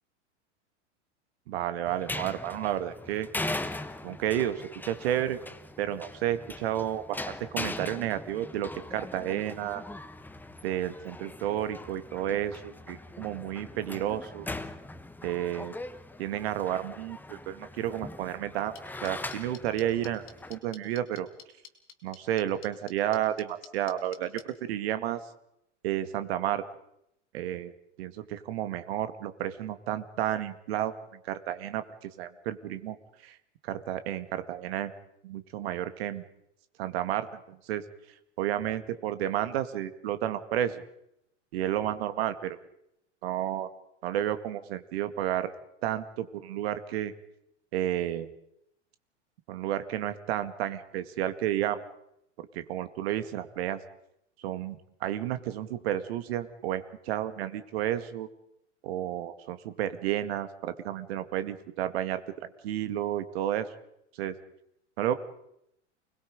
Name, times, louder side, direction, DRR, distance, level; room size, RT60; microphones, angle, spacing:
voice 1, 1.5-3.3 4.0-5.4 5.8-9.8 10.6-14.5 15.2-15.7 16.2-18.7 19.0-20.2 20.5-21.3 22.0-25.2 25.8-26.6 27.3-27.7 28.0-30.9 31.2-33.0 33.2-33.4 33.6-34.9 35.2-36.2 36.8-37.8 38.4-40.8 41.5-42.6 43.2-43.7 44.0-45.5 45.8-47.1 47.7-48.3 49.5-51.8 52.4-53.8 54.4-58.3 58.8-62.2 62.6-63.7 64.2-64.4 65.0-65.1, right 11 dB, 55° right, 11 dB, 2.1 m, -31 dB
sound 1, 1.9-20.6, left 2 dB, 5° left, 1.2 m, -40 dB
sound 2, 18.7-24.4, left 8 dB, 35° left, 4.0 m, -48 dB
29.5 x 21.0 x 5.1 m, 0.78 s
figure-of-eight pair, 90°, 36 cm